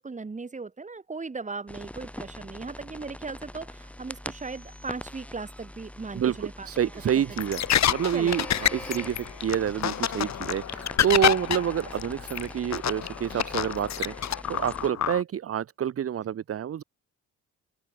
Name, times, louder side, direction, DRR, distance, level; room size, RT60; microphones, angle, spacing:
voice 1, 0.0-6.7 7.3-7.4 8.1-8.5, right 4 dB, 25° right, 4.8 m, -38 dB
sound 1, 1.7-14.9, left 1 dB, 5° left, 5.0 m, -43 dB
voice 2, 6.1-16.8, right 9 dB, 45° right, 1.2 m, -28 dB
sound 2, 7.4-15.2, left 10 dB, 60° left, 1.9 m, -28 dB
open air
cardioid pair, 115°, 31 cm